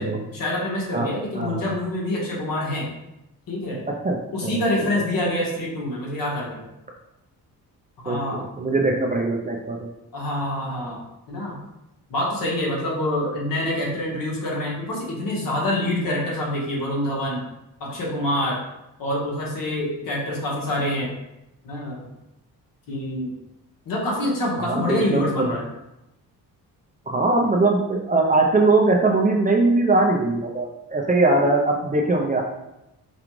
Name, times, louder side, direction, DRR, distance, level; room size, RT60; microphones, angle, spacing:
voice 1, 0.0-2.9 3.5-3.8 4.3-6.7 8.0-8.5 10.1-11.0 11.3-11.6 12.1-17.4 17.8-18.6 19.0-21.1 21.6-22.1 22.9-23.3 23.8-25.7, left 1 dB, 60° left, -4 dB, 1.5 m, -26 dB
voice 2, 3.9-4.2 4.4-5.0 8.1-9.9 24.6-25.5 27.1-32.4, right 2 dB, 20° right, 0 dB, 0.5 m, -21 dB
5.0 x 2.4 x 3.1 m, 0.91 s
cardioid pair, 90°, 38 cm